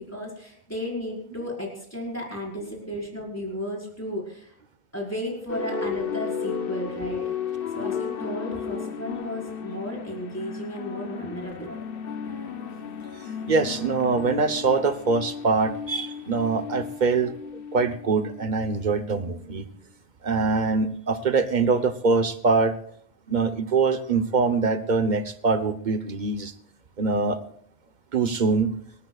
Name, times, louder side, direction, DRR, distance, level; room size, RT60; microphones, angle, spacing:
voice 1, 0.0-4.5 4.9-7.2 7.7-11.7, left 1 dB, 15° left, -3 dB, 5.0 m, -34 dB
sound 1, 5.5-18.8, left 6 dB, 60° left, 1.0 m, -34 dB
voice 2, 13.5-19.6 20.2-22.7 23.3-26.5 27.0-27.4 28.1-28.7, right 4 dB, 45° right, 10 dB, 1.1 m, -23 dB
26.5 x 13.5 x 2.4 m, 0.63 s
omnidirectional pair, 1.1 m